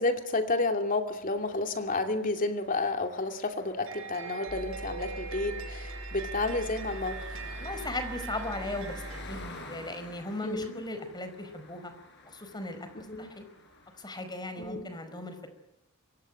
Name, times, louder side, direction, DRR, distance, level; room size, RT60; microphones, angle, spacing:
voice 1, 0.0-7.2 10.4-10.8 13.1-13.3 14.6-14.9, left 2 dB, 40° left, 6 dB, 2.7 m, -31 dB
sound 1, 1.3-14.3, left 2 dB, 55° left, 8.0 m, -51 dB
sound 2, 3.9-9.2, right 6 dB, 70° right, 7.8 m, -42 dB
sound 3, 4.5-9.5, equal, 70° left, 3.9 m, -42 dB
voice 2, 7.6-11.9 12.2-13.5 14.0-15.5, left 2 dB, 20° left, 9 dB, 5.1 m, -38 dB
26.5 x 24.0 x 8.9 m, 0.80 s
head